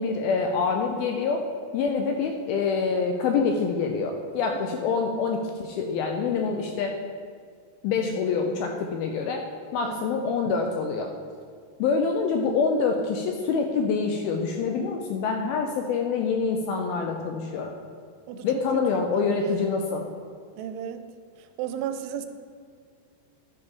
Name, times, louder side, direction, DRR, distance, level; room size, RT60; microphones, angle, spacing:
voice 1, 0.0-1.4 1.7-7.0 7.8-9.5 9.7-11.1 11.8-17.7 18.4-20.1, left 5 dB, 80° left, 3 dB, 2.2 m, -26 dB
voice 2, 4.5-4.9 9.8-10.1 18.3-19.6 20.6-21.1 21.4-22.3, right 9 dB, 85° right, 8 dB, 2.6 m, -35 dB
11.0 x 5.1 x 4.7 m, 2.1 s
omnidirectional pair, 4.8 m